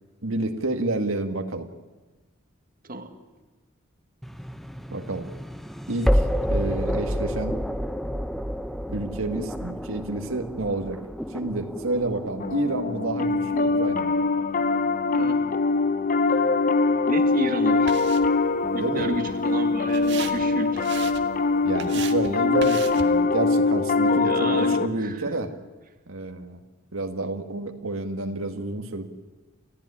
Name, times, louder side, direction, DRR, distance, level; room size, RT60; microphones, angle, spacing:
voice 1, 0.2-1.7 4.9-5.3 5.9-6.2 6.5-7.6 8.9-11.0 11.3-14.2 18.8-19.1 21.6-25.5 26.1-26.6 26.9-29.1, right 2 dB, 75° right, 6 dB, 1.9 m, -29 dB
voice 2, 2.8-3.2 15.1-15.4 17.1-17.9 18.7-20.9 24.1-25.4, right 1 dB, 45° right, 6 dB, 1.9 m, -32 dB
sound 1, 4.2-15.2, equal, ahead, 0.9 m, -30 dB
Piano, 12.4-24.9, left 3 dB, 40° left, 1.0 m, -23 dB
sound 2, 17.2-23.3, right 6 dB, 60° right, 1.7 m, -40 dB
29.0 x 15.5 x 10.0 m, 1.2 s
head